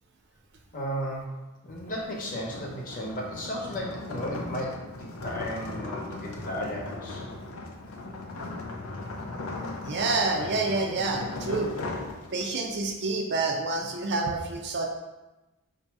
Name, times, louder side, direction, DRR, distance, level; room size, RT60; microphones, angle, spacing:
voice 1, 0.7-1.4 1.6-7.2, equal, 40° left, -2 dB, 0.9 m, -35 dB
sound 1, 1.8-12.7, left 2 dB, 80° left, 0.6 m, -38 dB
voice 2, 9.8-11.7 12.3-14.9, right 3 dB, 50° right, 2 dB, 0.6 m, -28 dB
4.1 x 2.7 x 4.6 m, 1.1 s
head